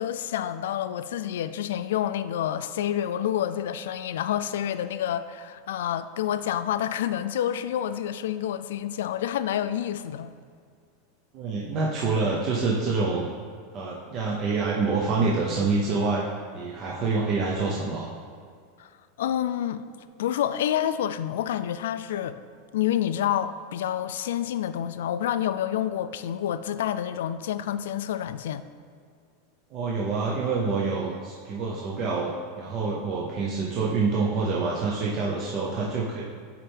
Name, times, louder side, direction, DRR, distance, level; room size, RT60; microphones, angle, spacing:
voice 1, 0.0-10.3 18.8-18.9 19.2-19.8 20.2-22.4 22.7-28.7, left 10 dB, 85° left, 12 dB, 0.3 m, -28 dB
voice 2, 11.3-13.3 13.7-16.2 16.5-18.0 29.7-36.2, right 4 dB, 35° right, -3 dB, 0.6 m, -26 dB
9.7 x 4.3 x 3.4 m, 2.1 s
supercardioid pair, 165°, 0 cm